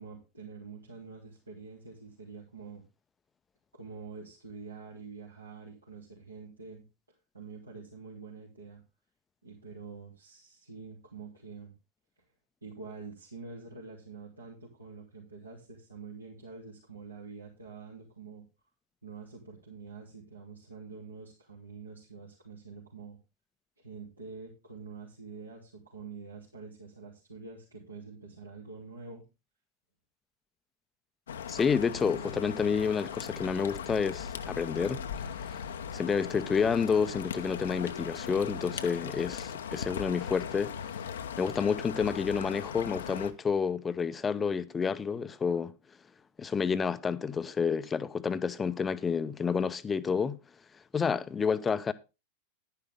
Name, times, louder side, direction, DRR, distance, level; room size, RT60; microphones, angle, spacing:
voice 1, 0.0-2.8 3.7-6.8 7.3-8.8 9.4-11.7 12.6-18.5 19.0-23.2 23.8-29.2, right 5 dB, 80° right, 3.0 m, -46 dB
sound 1, 31.3-43.3, left 7 dB, 65° left, 0.8 m, -39 dB
voice 2, 31.5-35.6 35.9-40.7 41.4-45.7 46.4-50.4 50.9-51.9, left 6 dB, 15° left, 0.7 m, -29 dB
11.0 x 10.0 x 3.6 m
figure-of-eight pair, 90°, 0 cm